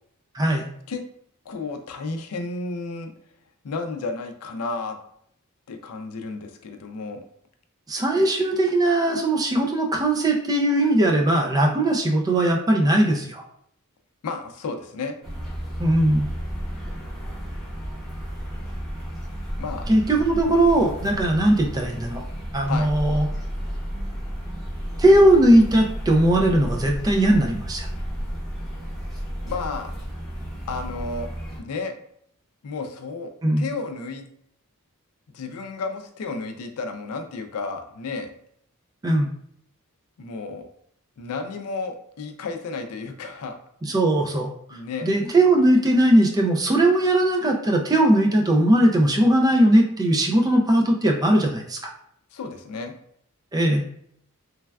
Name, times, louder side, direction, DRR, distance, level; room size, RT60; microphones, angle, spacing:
voice 1, 0.3-0.7 7.9-13.4 15.8-16.3 19.9-22.2 22.5-23.3 25.0-27.9 33.4-33.6 39.0-39.3 43.8-51.8 53.5-53.8, right 1 dB, 15° right, 1 dB, 0.3 m, -19 dB
voice 2, 1.5-3.1 3.6-5.0 5.7-7.2 14.2-15.1 19.6-19.8 22.7-22.9 29.4-29.9 30.7-31.3 31.6-31.9 32.6-33.3 33.6-34.3 35.3-38.3 40.2-40.7 41.2-43.5 44.7-45.1 52.3-53.0, left 3 dB, 75° left, 6 dB, 0.4 m, -32 dB
sound 1, 15.2-31.6, equal, ahead, 0.7 m, -32 dB
3.2 x 2.2 x 2.2 m, 0.68 s
head